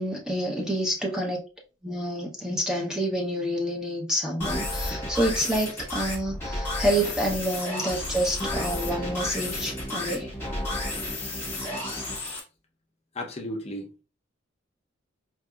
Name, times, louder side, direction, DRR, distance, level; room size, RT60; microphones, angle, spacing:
voice 1, 0.0-1.4 1.8-10.3, equal, 5° right, 0.7 m, -28 dB
sound 1, 4.4-12.4, left 1 dB, 15° left, 1.3 m, -32 dB
voice 2, 13.1-14.0, left 1 dB, 35° left, 0.7 m, -34 dB
4.6 x 2.6 x 2.3 m
head